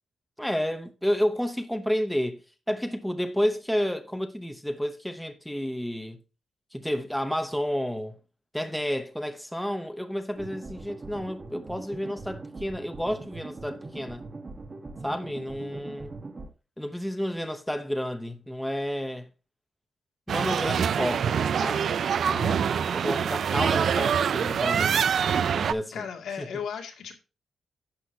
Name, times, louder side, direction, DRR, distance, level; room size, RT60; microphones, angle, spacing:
voice 1, 0.4-6.2 6.7-8.2 8.5-14.2 15.0-16.1 16.8-19.3 20.3-21.9 22.9-25.2 25.5-26.1 26.4-26.5, equal, ahead, 0.8 m, -31 dB
sound 1, 10.4-16.5, right 3 dB, 25° right, 1.2 m, -41 dB
sound 2, 20.3-25.7, right 7 dB, 55° right, 0.4 m, -25 dB
voice 2, 25.9-27.1, left 7 dB, 85° left, 2.4 m, -35 dB
11.0 x 8.2 x 2.8 m
wide cardioid pair, 180°, 0 cm